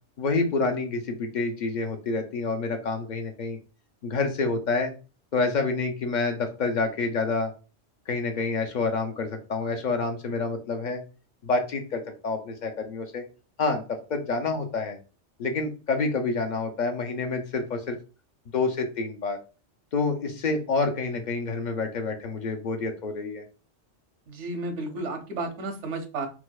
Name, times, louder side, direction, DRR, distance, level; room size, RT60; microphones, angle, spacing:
voice 1, 0.2-3.6 4.0-4.9 5.3-7.5 8.1-11.0 11.4-13.2 13.6-15.0 15.4-18.0 18.5-19.4 19.9-23.4, left 3 dB, 60° left, 5 dB, 0.5 m, -28 dB
voice 2, 24.3-26.3, right 2 dB, 85° right, 5 dB, 1.0 m, -32 dB
4.5 x 2.0 x 2.2 m, 0.34 s
omnidirectional pair, 1.2 m